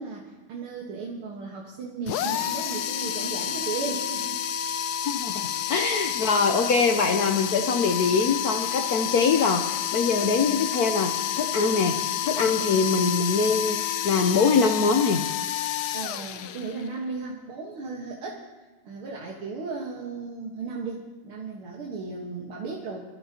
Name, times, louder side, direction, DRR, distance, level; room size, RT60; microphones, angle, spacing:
voice 1, 0.0-4.4 5.6-5.9 15.9-18.5 18.8-23.0, right 4 dB, 85° right, -2 dB, 2.4 m, -35 dB
sound 1, 2.1-16.9, left 11 dB, 90° left, 0.8 m, -29 dB
voice 2, 5.1-13.8 14.0-15.2, left 4 dB, 60° left, 5 dB, 1.0 m, -23 dB
24.5 x 14.0 x 2.9 m, 1.2 s
omnidirectional pair, 2.3 m